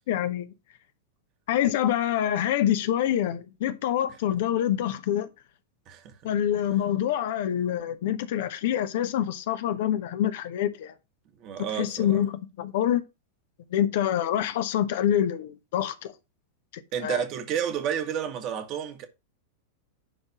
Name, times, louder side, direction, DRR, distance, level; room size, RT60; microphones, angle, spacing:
voice 1, 0.1-0.5 1.5-5.3 6.2-10.9 11.7-13.0 13.7-16.1 17.0-17.2, left 11 dB, 55° left, 1.0 m, -26 dB
voice 2, 11.4-12.2 16.9-19.1, right 8 dB, 40° right, 1.8 m, -30 dB
10.5 x 4.0 x 6.0 m
figure-of-eight pair, 90°, 0 cm